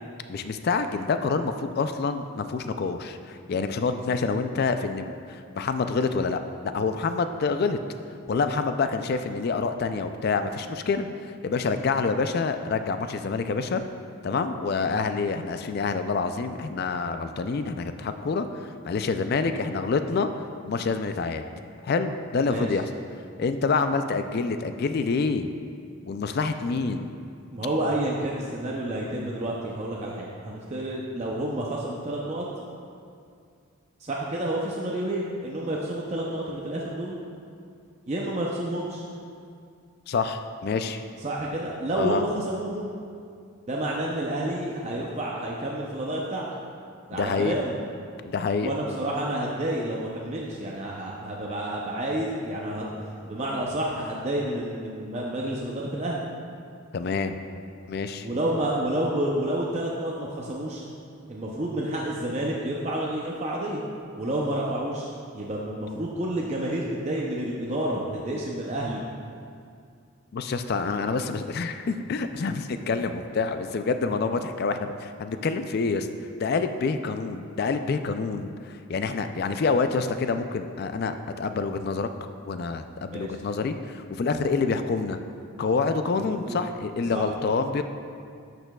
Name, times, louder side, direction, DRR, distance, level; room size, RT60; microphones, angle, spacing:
voice 1, 0.3-7.8 8.3-11.1 11.4-13.8 14.2-18.5 18.8-20.3 20.7-21.4 21.8-22.9 23.4-25.5 26.1-27.1 40.1-41.0 42.0-42.2 47.1-47.6 48.2-48.7 56.9-57.4 57.9-58.3 70.3-76.1 76.4-82.1 82.5-85.2 85.6-87.8, left 4 dB, 45° left, 9 dB, 0.3 m, -27 dB
voice 2, 27.5-32.5 34.0-37.2 38.1-39.1 41.2-42.9 43.7-46.4 47.1-47.7 48.6-52.9 53.2-56.2 58.2-60.8 61.3-63.8 64.2-69.0 83.1-83.4 86.2-86.6 87.1-87.3, right 1 dB, 30° right, -3 dB, 0.5 m, -29 dB
10.5 x 6.6 x 2.3 m, 2.3 s
head